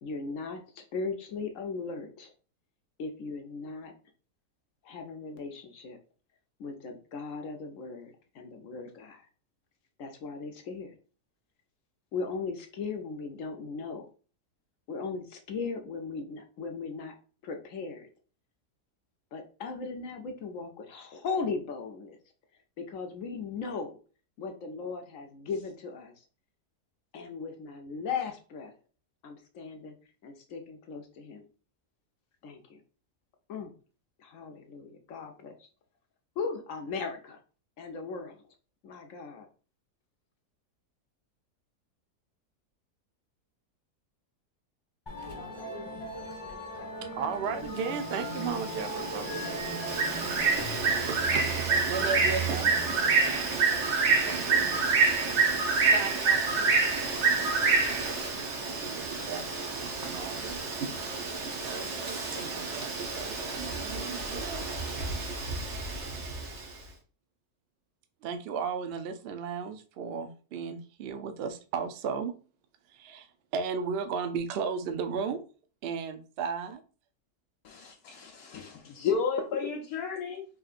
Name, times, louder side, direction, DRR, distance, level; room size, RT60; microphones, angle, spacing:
voice 1, 0.0-2.3 3.0-3.9 4.8-6.0 6.6-9.3 10.0-10.9 12.1-14.1 14.9-17.1 17.4-18.1 19.3-22.2 22.8-24.0 24.4-26.1 27.1-28.7 29.2-30.0 30.2-31.5 32.4-32.8 33.5-33.7 34.2-35.7 36.4-37.4 37.8-38.4 38.8-39.5, left 4 dB, 65° left, 5 dB, 1.0 m, -37 dB
Musical instrument, 45.1-60.6, right 2 dB, 20° left, 0.7 m, -40 dB
voice 2, 47.0-49.6 51.1-51.5 51.9-52.8 53.0-54.7 55.8-56.8 58.6-59.4 59.7-60.6 61.6-64.7 68.2-72.3 72.9-75.4 75.8-76.8, right 6 dB, 70° right, 8 dB, 0.5 m, -36 dB
Bird, 47.9-66.6, right 4 dB, 55° right, 1.1 m, -28 dB
voice 3, 77.6-80.4, left 6 dB, 85° left, -1 dB, 1.2 m, -32 dB
4.7 x 3.0 x 2.5 m, 0.38 s
omnidirectional pair, 1.6 m